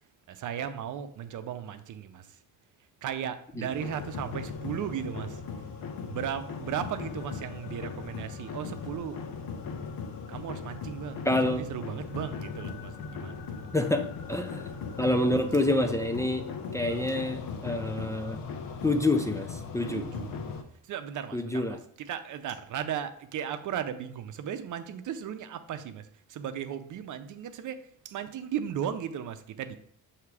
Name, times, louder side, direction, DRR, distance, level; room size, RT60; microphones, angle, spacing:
voice 1, 0.3-2.4 3.0-5.4 6.1-9.2 10.3-13.7 16.8-17.2 19.9-20.4 20.9-29.8, right 9 dB, 60° right, 9 dB, 0.6 m, -36 dB
sound 1, 3.7-20.6, left 5 dB, 75° left, 0.8 m, -38 dB
voice 2, 11.3-11.7 13.7-14.6 15.0-16.4 16.7-18.4 18.8-20.0 21.3-21.8, left 1 dB, 10° left, 6 dB, 0.4 m, -27 dB
7.0 x 2.9 x 4.8 m, 0.65 s
cardioid pair, 125°, 35 cm